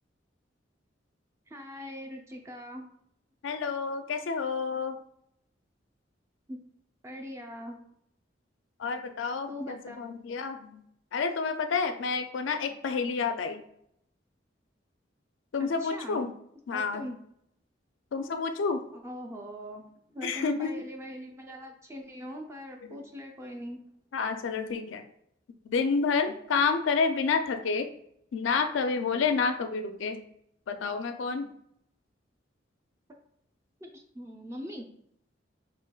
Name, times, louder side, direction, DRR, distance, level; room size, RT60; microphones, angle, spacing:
voice 1, 1.5-2.9 6.5-6.6 7.0-7.8 9.5-10.2 15.6-16.2 16.7-17.1 18.2-18.3 18.9-19.8 20.1-23.8 33.8-34.8, equal, 15° right, 2 dB, 0.5 m, -41 dB
voice 2, 3.4-5.0 8.8-10.8 11.1-13.6 15.5-16.3 16.7-17.1 18.1-18.8 20.2-20.7 22.8-23.0 24.1-25.0 25.7-27.9 28.3-30.2 30.7-31.5, left 5 dB, 80° left, 8 dB, 0.4 m, -29 dB
5.0 x 2.9 x 2.3 m, 0.71 s
head